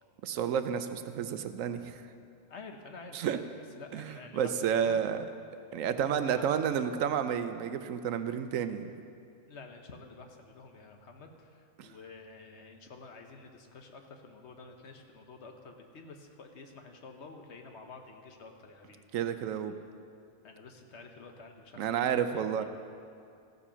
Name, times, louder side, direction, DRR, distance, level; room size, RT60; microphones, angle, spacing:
voice 1, 0.2-2.0 3.1-3.4 3.9-5.2 5.7-8.9 11.8-11.9 19.1-19.7 21.8-22.6, right 8 dB, 80° right, 10 dB, 1.0 m, -31 dB
voice 2, 2.5-3.4 3.8-5.1 6.2-6.9 9.5-19.1 20.4-22.6, left 4 dB, 60° left, 4 dB, 1.2 m, -50 dB
14.5 x 7.3 x 5.6 m, 2.4 s
omnidirectional pair, 1.4 m